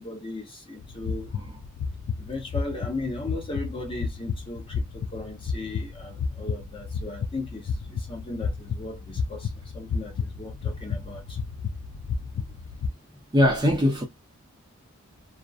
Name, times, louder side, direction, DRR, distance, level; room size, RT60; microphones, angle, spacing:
voice 1, 0.0-1.3 2.2-4.6 4.9-7.6 7.9-9.5 9.7-11.2, left 2 dB, 25° left, 0.7 m, -36 dB
sound 1, 0.8-12.9, left 5 dB, 75° left, 0.3 m, -32 dB
voice 2, 13.3-14.0, left 1 dB, 20° right, 0.6 m, -21 dB
2.5 x 2.1 x 2.4 m
head